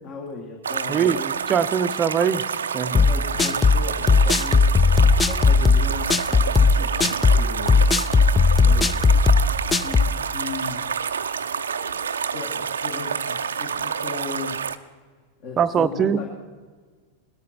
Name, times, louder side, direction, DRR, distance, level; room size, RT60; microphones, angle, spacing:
voice 1, 0.0-1.2 2.9-4.8 5.0-8.0 8.6-9.3 9.6-10.8 11.9-14.6 15.4-16.3, left 5 dB, 40° left, 1 dB, 2.0 m, -37 dB
sound 1, 0.6-14.8, right 6 dB, 70° right, 0.5 m, -28 dB
voice 2, 0.9-2.4 2.7-3.0 15.6-16.2, right 7 dB, 25° right, 13 dB, 0.6 m, -22 dB
sound 2, 2.9-10.2, left 4 dB, 15° left, 0.4 m, -17 dB
20.5 x 13.5 x 4.4 m, 1.5 s
figure-of-eight pair, 90°, 0 cm